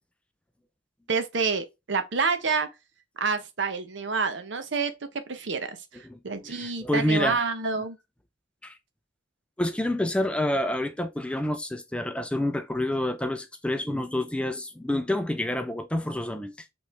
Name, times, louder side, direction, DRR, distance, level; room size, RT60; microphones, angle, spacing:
voice 1, 1.1-2.7 3.2-4.9 5.3-8.0, right 4 dB, 65° right, 0.7 m, -28 dB
voice 2, 6.0-7.4 7.8-7.9 8.6-8.8 9.6-16.7, left 1 dB, 5° left, 0.4 m, -28 dB
5.2 x 3.1 x 3.1 m
head